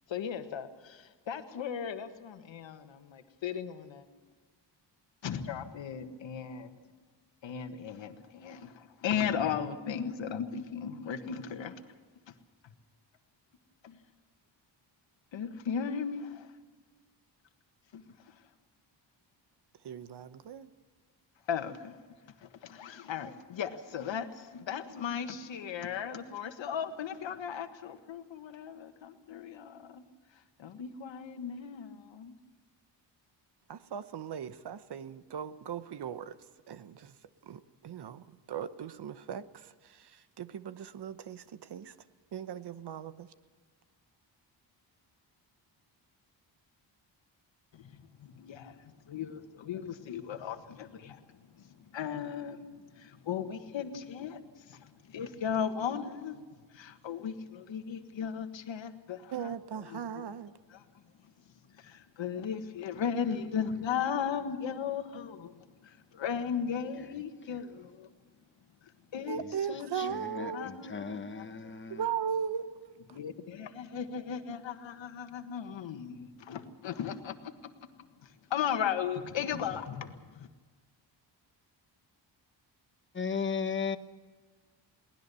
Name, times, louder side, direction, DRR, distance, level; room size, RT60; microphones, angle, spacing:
voice 1, 0.1-4.1 5.2-6.8 7.4-11.9 12.3-12.4 12.6-12.7 13.8-14.0 15.3-16.6 17.9-18.5 21.4-22.0 22.4-30.0 30.3-32.3 47.7-59.5 59.9-60.3 60.7-68.1 68.8-69.4 69.7-71.7 73.1-80.5, left 7 dB, 80° left, 1.6 m, -37 dB
voice 2, 19.8-20.7 33.7-36.4 36.7-42.0 42.3-43.3 59.3-60.5 69.3-72.7, right 8 dB, 65° right, 0.9 m, -38 dB
voice 3, 70.0-72.0 83.1-84.0, left 6 dB, 25° left, 1.0 m, -35 dB
22.5 x 18.5 x 6.9 m
wide cardioid pair, 140°, 44 cm